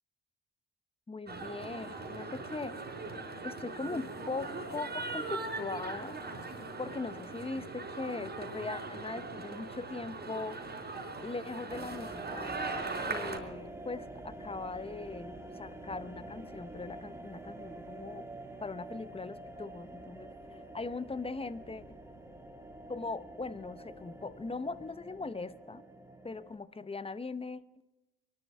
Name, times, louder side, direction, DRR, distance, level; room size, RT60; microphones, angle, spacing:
voice 1, 1.1-2.8 3.4-6.2 6.8-10.6 11.2-12.5 13.0-18.3 18.6-21.8 22.9-25.8 26.2-27.6, left 3 dB, 15° left, 15 dB, 0.8 m, -40 dB
sound 1, 1.3-13.4, right 3 dB, 30° right, 4.1 m, -40 dB
sound 2, 11.7-26.6, right 2 dB, 10° right, 1.9 m, -47 dB
23.5 x 11.5 x 4.7 m, 1.0 s
hypercardioid pair, 55°, 34 cm